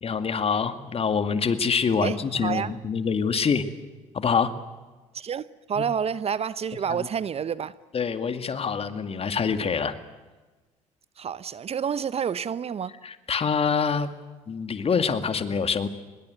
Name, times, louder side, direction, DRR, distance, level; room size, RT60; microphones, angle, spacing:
voice 1, 0.0-3.6 4.1-4.5 5.8-5.9 7.9-9.9 13.0-14.1 14.5-15.9, left 6 dB, 35° left, 2.2 m, -25 dB
voice 2, 2.0-2.7 5.1-7.7 11.2-12.9, right 7 dB, 40° right, 0.8 m, -29 dB
24.0 x 21.5 x 8.1 m
hypercardioid pair, 55°, 17 cm